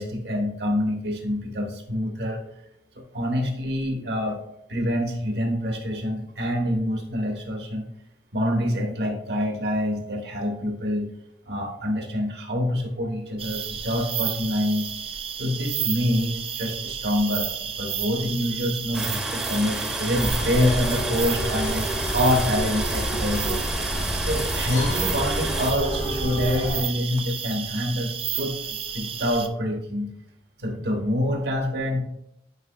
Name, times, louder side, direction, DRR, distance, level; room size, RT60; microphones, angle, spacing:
voice 1, 0.0-2.4 2.9-4.4 4.7-7.9 8.3-11.1 11.5-14.9 15.4-17.5 17.8-23.6 24.2-30.1 30.6-32.0, left 1 dB, 65° right, 2 dB, 1.4 m, -26 dB
sound 1, 13.4-29.5, right 8 dB, 30° right, 0.4 m, -32 dB
sound 2, 18.9-25.7, right 1 dB, 5° right, 0.8 m, -31 dB
sound 3, 20.1-26.8, equal, 75° left, 2.3 m, -29 dB
9.7 x 4.8 x 2.4 m, 0.78 s
head